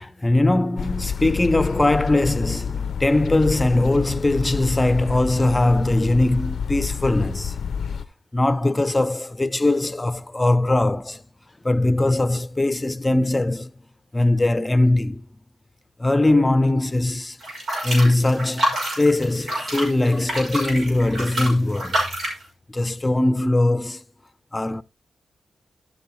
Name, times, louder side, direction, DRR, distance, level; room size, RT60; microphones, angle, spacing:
voice 1, 0.0-7.6 8.3-11.2 11.6-13.7 14.1-15.3 16.0-17.4 17.8-22.0 22.7-24.0 24.5-24.8, left 2 dB, 20° left, 0.7 m, -20 dB
sound 1, 0.8-8.1, left 7 dB, 75° left, 0.5 m, -29 dB
sound 2, 17.4-22.4, equal, 70° right, 5.6 m, -27 dB
12.0 x 7.7 x 3.1 m
supercardioid pair, 45°, 0 cm